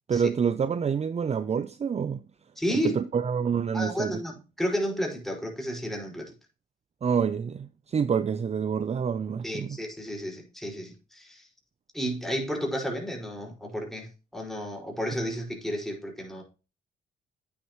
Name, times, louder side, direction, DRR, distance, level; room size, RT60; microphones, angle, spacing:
voice 1, 0.1-2.2 2.7-4.2 7.0-9.8, right 6 dB, 35° right, 0.6 m, -27 dB
voice 2, 2.6-3.1 3.7-6.3 9.4-11.5 11.9-16.4, equal, ahead, 5.3 m, -32 dB
9.7 x 9.2 x 3.1 m
cardioid pair, 90°, 20 cm